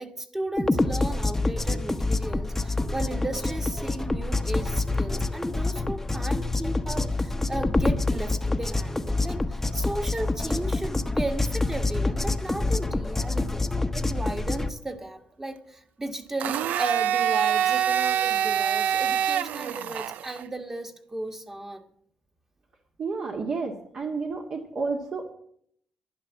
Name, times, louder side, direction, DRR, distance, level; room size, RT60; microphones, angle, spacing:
voice 1, 0.0-13.6 13.9-21.8, right 1 dB, 15° right, 6 dB, 1.5 m, -35 dB
sound 1, 0.6-14.7, left 2 dB, 10° left, 0.9 m, -27 dB
Domestic sounds home sounds, 16.4-20.4, right 9 dB, 80° right, 0.4 m, -25 dB
voice 2, 23.0-25.3, right 4 dB, 55° right, 0 dB, 1.9 m, -31 dB
12.0 x 11.0 x 7.2 m, 0.67 s
cardioid pair, 95°, 3 cm